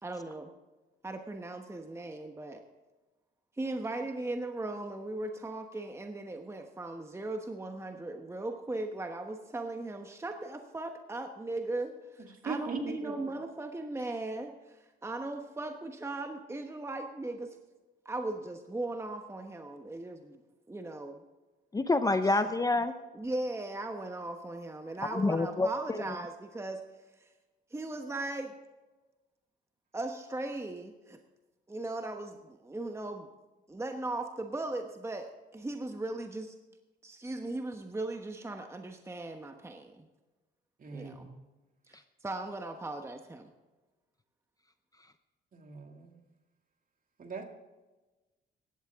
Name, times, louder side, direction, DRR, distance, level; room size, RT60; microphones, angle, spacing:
voice 1, 0.0-0.5 1.0-2.6 3.6-17.6 18.0-20.4 20.7-21.2 22.3-22.4 23.1-26.8 27.7-28.5 29.9-31.2 31.7-33.3 33.7-36.5 37.0-40.1 40.9-41.3 41.9-43.5, right 2 dB, 15° right, 5 dB, 1.1 m, -38 dB
voice 2, 12.2-13.1 40.8-41.4 45.5-46.1 47.2-47.4, right 4 dB, 45° right, 3 dB, 2.3 m, -40 dB
voice 3, 21.7-22.9 25.1-26.0, left 2 dB, 20° left, 10 dB, 0.6 m, -27 dB
16.5 x 12.0 x 3.6 m, 1.2 s
cardioid pair, 90°, 20 cm